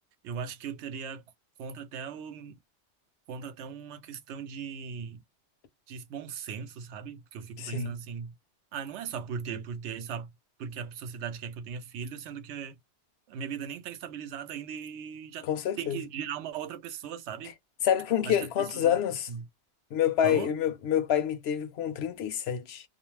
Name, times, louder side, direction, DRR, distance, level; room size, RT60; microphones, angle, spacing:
voice 1, 0.2-1.2 1.6-2.6 3.3-5.2 5.9-8.3 8.7-10.3 10.6-12.7 13.3-15.5 15.8-17.5 18.3-18.9 19.3-19.5 20.2-20.5, right 7 dB, 80° right, 0.9 m, -38 dB
voice 2, 7.6-7.9 15.4-16.0 17.8-19.3 19.9-22.8, left 9 dB, 70° left, 0.8 m, -27 dB
2.4 x 2.1 x 3.0 m
omnidirectional pair, 1.2 m